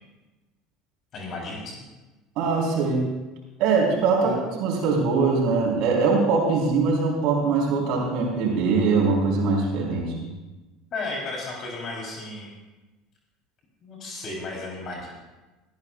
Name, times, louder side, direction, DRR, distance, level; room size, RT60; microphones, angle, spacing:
voice 1, 1.1-1.8 4.2-4.4 10.9-12.6 13.8-15.1, left 3 dB, 45° left, -2 dB, 3.7 m, -34 dB
voice 2, 2.4-3.1 3.6-10.3, right 4 dB, 60° right, -2 dB, 4.2 m, -22 dB
19.0 x 14.0 x 2.5 m, 1.1 s
hypercardioid pair, 70°, 0 cm